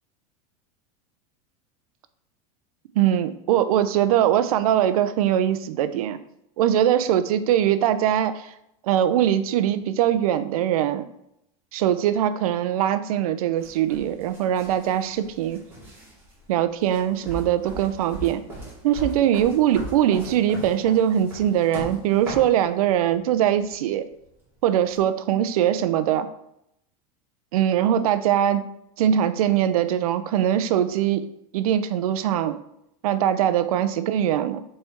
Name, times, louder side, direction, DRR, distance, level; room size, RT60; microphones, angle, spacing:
voice 1, 2.9-6.2 6.6-8.5 8.8-11.1 11.7-15.6 16.5-18.4 18.8-24.1 24.6-26.3 27.5-28.7 29.0-31.3 31.5-32.6 33.0-34.6, right 10 dB, 85° right, 12 dB, 0.6 m, -22 dB
sound 1, 13.6-22.5 23.5-23.7 24.9-25.0, right 2 dB, 10° right, 2.3 m, -38 dB
5.5 x 4.4 x 4.5 m, 0.79 s
supercardioid pair, 160°, 18 cm